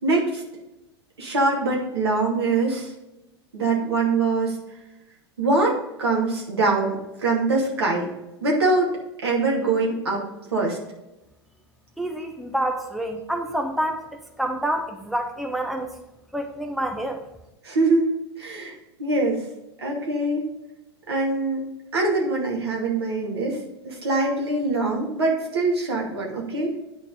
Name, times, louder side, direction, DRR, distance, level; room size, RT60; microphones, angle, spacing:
voice 1, 0.0-0.4 1.2-2.9 3.5-4.5 5.4-8.1 8.4-10.2 10.5-10.8 17.6-18.7 19.0-19.4 19.8-20.5 21.1-26.8, right 3 dB, 70° right, -1 dB, 2.5 m, -23 dB
voice 2, 12.0-14.0 14.4-15.9 16.3-17.2, right 1 dB, ahead, 3 dB, 0.8 m, -27 dB
10.0 x 4.3 x 5.3 m, 0.94 s
figure-of-eight pair, 90°, 14 cm